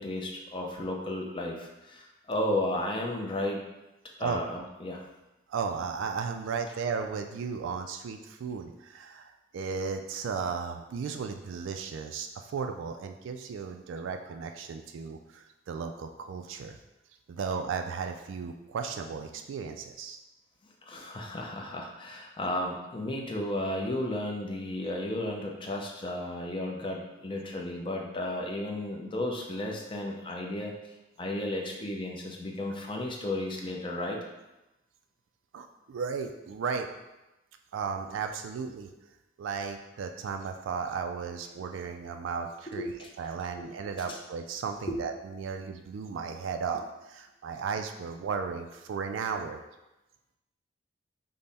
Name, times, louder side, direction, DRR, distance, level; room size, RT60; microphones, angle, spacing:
voice 1, 0.0-3.6 4.2-5.0 20.9-30.8 31.2-34.2 42.8-43.1 43.6-43.7 44.1-44.2 44.9-45.0, left 1 dB, 25° left, 0 dB, 0.5 m, -33 dB
voice 2, 5.5-16.8 17.3-20.2 35.5-36.9 37.7-38.9 39.4-49.6, right 5 dB, 80° right, 5 dB, 0.3 m, -35 dB
5.3 x 2.1 x 4.0 m, 0.98 s
head